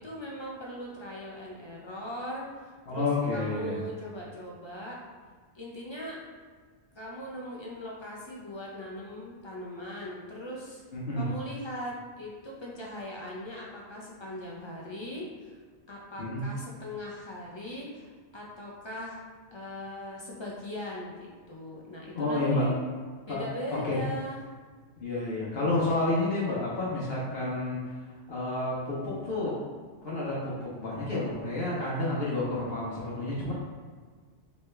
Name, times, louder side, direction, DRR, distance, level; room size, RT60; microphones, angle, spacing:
voice 1, 0.0-5.0 5.5-6.2 7.0-10.8 11.2-15.6 15.9-19.2 19.5-22.7 23.3-24.4, left 1 dB, 45° left, -4 dB, 0.4 m, -40 dB
voice 2, 2.9-3.8 10.9-11.3 16.2-16.4 22.1-22.7 23.3-23.4 23.7-24.0 25.0-27.8 28.3-29.6 30.0-33.5, left 2 dB, 65° left, -7 dB, 1.0 m, -30 dB
3.3 x 3.0 x 3.2 m, 1.5 s
omnidirectional pair, 1.1 m